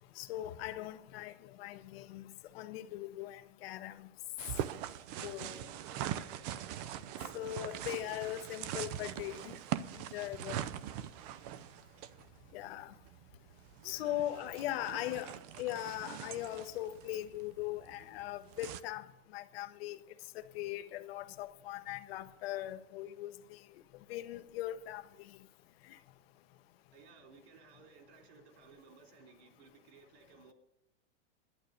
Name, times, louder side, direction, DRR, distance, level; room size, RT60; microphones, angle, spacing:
voice 1, 0.2-2.2 2.5-4.1 5.2-5.7 7.3-9.5 10.1-10.6 12.5-12.9 13.8-19.1 19.3-20.0 20.3-23.6 24.1-25.0 25.9-26.0, left 14 dB, 55° left, 0.9 m, -40 dB
sound 1, 4.4-18.8, right 11 dB, 35° right, 0.5 m, -42 dB
voice 2, 5.1-8.3 8.8-9.0 13.8-15.7 26.9-30.5, right 5 dB, 55° right, 3.5 m, -59 dB
11.5 x 9.5 x 6.5 m
supercardioid pair, 165°, 37 cm